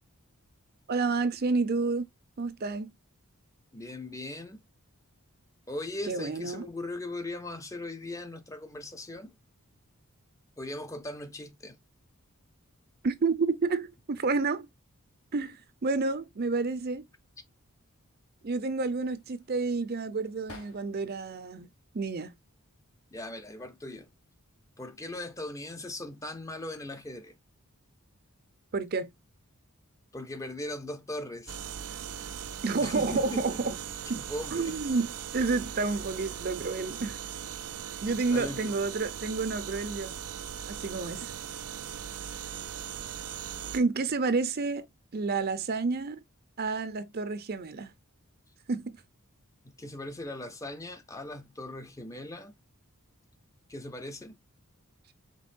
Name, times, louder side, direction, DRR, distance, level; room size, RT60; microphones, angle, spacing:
voice 1, 0.9-2.0 2.4-2.9 6.1-6.7 13.0-14.7 15.3-17.0 18.4-21.7 21.9-22.3 28.7-29.1 32.6-33.7 34.1-34.2 34.5-37.2 38.0-40.1 40.7-41.3 43.7-44.8 45.1-46.2 46.6-47.9 48.7-49.0, right 4 dB, 45° right, 0.6 m, -30 dB
voice 2, 3.7-4.6 5.7-9.3 10.6-11.8 23.1-24.1 24.8-27.4 30.1-31.6 32.8-33.6 34.1-34.8 38.3-38.7 49.8-52.5 53.7-54.4, left 1 dB, 15° left, 0.6 m, -39 dB
sound 1, 18.7-21.2 21.7-22.5 23.4-23.8 24.1-24.9, left 2 dB, 85° left, 1.9 m, -55 dB
sound 2, 31.5-43.8, right 8 dB, 90° right, 0.5 m, -39 dB
5.3 x 3.5 x 2.5 m
head